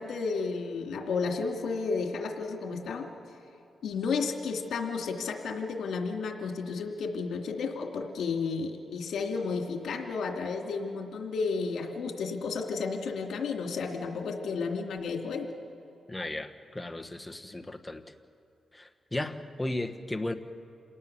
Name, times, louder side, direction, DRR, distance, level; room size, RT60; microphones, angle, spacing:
voice 1, 0.0-3.1 3.8-15.5, left 4 dB, 80° left, 2 dB, 2.7 m, -32 dB
voice 2, 16.1-18.0 18.7-20.3, left 1 dB, 10° left, 5 dB, 1.3 m, -35 dB
28.0 x 18.5 x 7.1 m, 2.6 s
cardioid pair, 95°, 0 cm